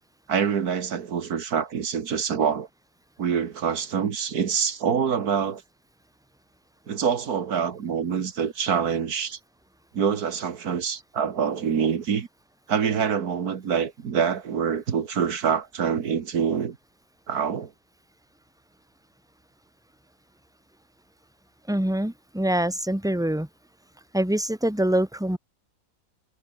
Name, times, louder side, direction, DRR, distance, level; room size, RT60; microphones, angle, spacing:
voice 1, 0.3-2.7 3.2-5.6 6.9-9.4 9.9-12.3 12.7-16.8 17.3-17.7, right 7 dB, 75° right, 2.0 m, -25 dB
voice 2, 21.7-23.5 24.1-25.4, right 1 dB, ahead, 2.8 m, -24 dB
omnidirectional pair, 1.6 m